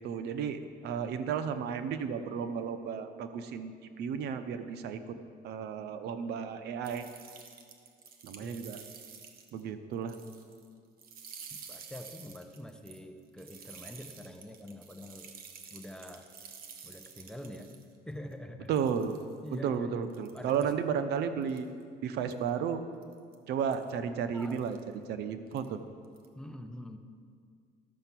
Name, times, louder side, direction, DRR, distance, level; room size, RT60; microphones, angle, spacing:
voice 1, 0.0-3.7 4.0-5.2 5.4-7.1 8.2-8.8 9.5-10.1 18.7-19.2 19.5-21.7 22.0-22.8 23.5-24.8 25.1-25.8, right 7 dB, 75° right, 10 dB, 0.7 m, -33 dB
sound 1, 6.8-9.6 9.9-10.7 11.0-17.8 18.3-18.4 18.7-19.5 20.1-20.7 21.4-21.8 22.3-22.5 23.0-23.3 23.7-23.9 24.4-24.8 25.5-25.7 26.0-26.3, right 6 dB, 60° right, 1.1 m, -50 dB
voice 2, 8.4-8.7 11.5-15.3 15.7-16.3 16.8-17.7 18.0-18.8 19.4-20.1 20.3-20.7 24.3-24.6 26.3-27.0, left 1 dB, 5° left, 5 dB, 0.8 m, -45 dB
13.0 x 6.7 x 6.0 m, 2.2 s
cardioid pair, 110°, 17 cm